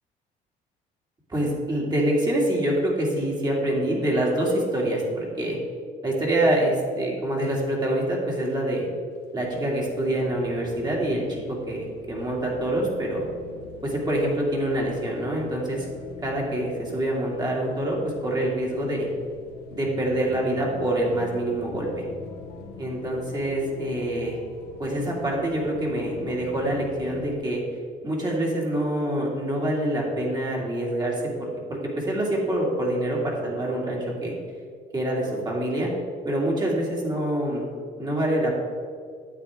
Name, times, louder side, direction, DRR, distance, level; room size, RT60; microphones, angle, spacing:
voice 1, 1.3-5.6 6.0-8.9 9.3-11.4 11.7-13.3 13.8-15.9 16.2-19.1 19.7-22.0 22.8-24.4 24.8-27.6 28.0-34.4 34.9-35.9 36.2-37.6 38.0-38.5, right 1 dB, 25° right, -3 dB, 2.4 m, -26 dB
sound 1, 9.4-27.4, left 5 dB, 90° left, 1.0 m, -44 dB
9.6 x 7.8 x 3.6 m, 2.1 s
cardioid pair, 110°, 17 cm